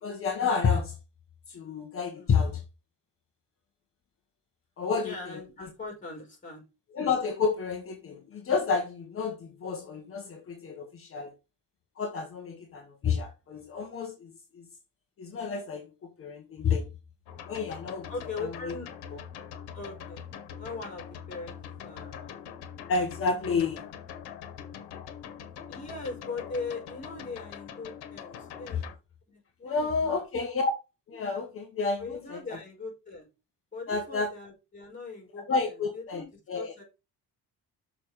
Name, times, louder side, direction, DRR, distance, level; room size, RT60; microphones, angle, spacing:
voice 1, 0.0-0.9 1.5-2.6 4.8-5.4 6.9-11.3 12.0-14.7 15.2-16.9 17.5-18.1 18.4-18.5 22.9-23.8 28.7-28.8 29.6-30.7 31.1-32.4 33.9-34.3 35.5-36.2 36.5-36.7, left 5 dB, 35° left, 1.3 m, -30 dB
voice 2, 5.0-6.6 18.1-18.9 19.7-20.3 20.6-22.7 25.7-28.8 29.3-30.2 32.0-33.3 33.7-36.8, left 3 dB, 20° left, 4.7 m, -40 dB
sound 1, 17.3-28.9, left 8 dB, 85° left, 1.5 m, -43 dB
6.9 x 5.1 x 4.8 m
cardioid pair, 175°, 38 cm